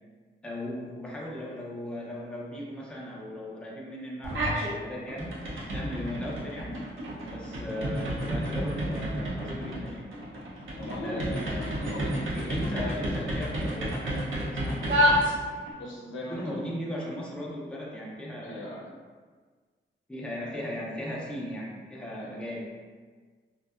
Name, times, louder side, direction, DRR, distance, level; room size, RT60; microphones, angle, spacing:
voice 1, 0.4-5.3 5.6-6.9 7.2-10.1 11.0-12.0 12.3-15.0 16.3-18.8 20.1-22.6, left 1 dB, 5° left, -5 dB, 0.5 m, -37 dB
sound 1, 4.2-4.7 5.1-15.7, equal, 80° right, 0.6 m, -30 dB
voice 2, 10.8-12.8 15.8-16.6 18.4-18.9 20.4-20.5 22.2-22.3, left 1 dB, 75° left, -4 dB, 0.6 m, -39 dB
2.5 x 2.2 x 2.3 m, 1.5 s
cardioid pair, 70°, 20 cm